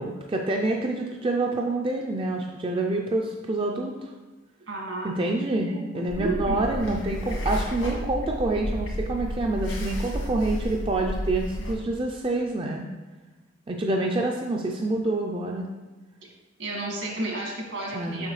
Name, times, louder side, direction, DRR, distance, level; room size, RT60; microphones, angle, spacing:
voice 1, 0.0-4.1 5.0-12.8 13.7-15.7 17.9-18.3, right 2 dB, 25° right, 1 dB, 0.3 m, -27 dB
voice 2, 4.7-5.3 5.6-6.7 16.6-18.3, right 2 dB, 75° right, -2 dB, 1.8 m, -32 dB
sound 1, 6.1-11.7, equal, 85° left, 1.8 m, -31 dB
6.5 x 6.1 x 3.1 m, 1.2 s
head